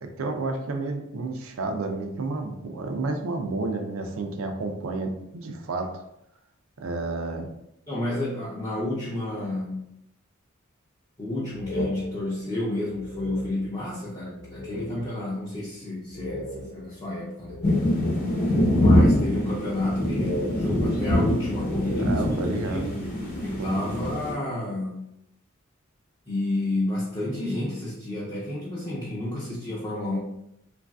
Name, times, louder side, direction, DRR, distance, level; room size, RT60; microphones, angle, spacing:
voice 1, 0.0-6.0 6.8-7.5 22.0-22.9 23.6-23.8, right 3 dB, 80° right, 5 dB, 0.4 m, -31 dB
voice 2, 7.9-9.8 11.2-17.6 18.7-23.2 23.4-25.1 26.3-30.2, left 1 dB, 20° left, -8 dB, 0.6 m, -30 dB
sound 1, 11.5-13.9 14.4-15.2 15.6-15.7 16.1-18.3 18.8-19.9 20.1-22.5, equal, 80° left, 0.6 m, -37 dB
sound 2, 17.6-24.3, left 1 dB, 45° left, 0.9 m, -24 dB
3.1 x 2.5 x 2.3 m, 0.79 s
head